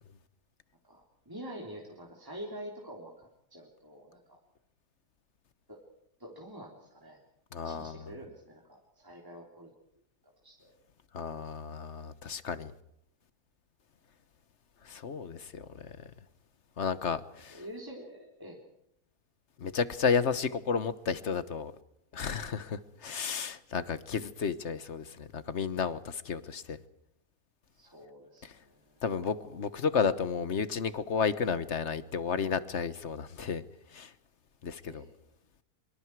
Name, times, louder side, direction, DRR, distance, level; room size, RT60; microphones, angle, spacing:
voice 1, 0.8-4.4 5.7-5.8 6.2-7.2 7.6-9.7 10.4-10.7 17.5-18.6 27.7-29.3 34.8-35.3, equal, 15° right, 3.5 m, -47 dB
voice 2, 7.5-8.0 11.1-12.7 14.9-16.1 16.8-17.6 19.6-21.7 22.1-26.8 29.0-33.6 33.9-34.1 34.6-35.0, left 6 dB, 55° left, 1.4 m, -32 dB
25.0 x 24.5 x 4.8 m
omnidirectional pair, 1.5 m